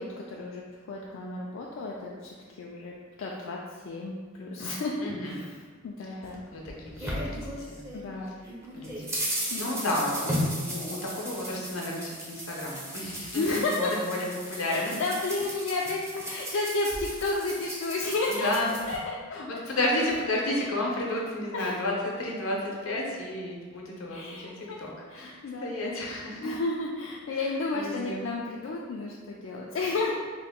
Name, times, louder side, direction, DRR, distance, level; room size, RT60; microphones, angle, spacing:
voice 1, 0.0-2.9 3.2-5.6 5.8-6.4 7.9-8.3 9.5-9.9 13.3-13.9 14.7-18.5 18.9-19.2 21.5-21.8 24.1-24.8 25.1-30.1, left 3 dB, 65° left, -3 dB, 0.3 m, -32 dB
voice 2, 5.0-5.4 6.0-6.1 6.5-7.1 7.4-7.8 8.7-15.0 18.3-18.8 19.3-26.5 27.3-28.2, left 1 dB, 80° left, -2 dB, 0.7 m, -32 dB
sound 1, 6.2-8.1 8.5-19.0, equal, 15° right, 0.5 m, -36 dB
2.9 x 2.5 x 3.5 m, 1.5 s
head